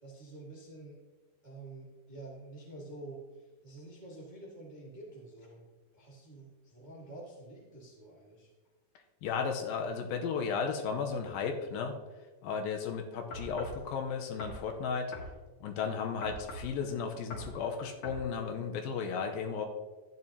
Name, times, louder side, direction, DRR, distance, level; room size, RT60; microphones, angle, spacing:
voice 1, 0.0-1.0 1.4-5.7 5.9-8.5, right 2 dB, 30° right, -5 dB, 0.8 m, -48 dB
voice 2, 9.2-11.9 12.4-15.1 15.6-19.7, left 6 dB, 80° left, 4 dB, 2.6 m, -34 dB
sound 1, 13.3-13.8 14.4-14.6 15.1-15.3 16.2-16.7 17.3-17.5 18.0-18.2, left 1 dB, 55° left, 2.6 m, -42 dB
12.5 x 9.5 x 2.8 m, 1.3 s
omnidirectional pair, 4.2 m